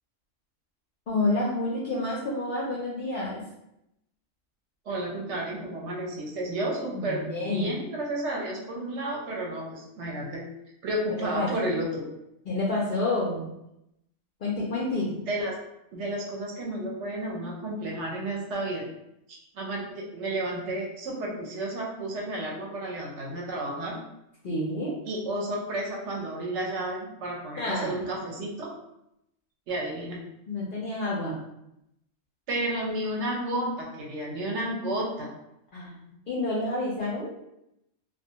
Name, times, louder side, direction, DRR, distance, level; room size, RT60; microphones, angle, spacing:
voice 1, 1.1-3.4 6.9-7.7 11.1-11.7 12.5-13.5 14.4-15.2 24.4-24.9 27.6-27.9 30.5-31.4 35.7-36.0 36.3-37.4, left 2 dB, 60° left, -5 dB, 0.5 m, -29 dB
voice 2, 4.9-10.4 10.8-12.0 15.3-15.5 15.9-18.9 19.3-24.0 25.0-28.7 29.7-30.2 32.5-35.3, right 1 dB, 65° right, -2 dB, 0.9 m, -32 dB
2.3 x 2.2 x 2.7 m, 0.82 s
omnidirectional pair, 1.3 m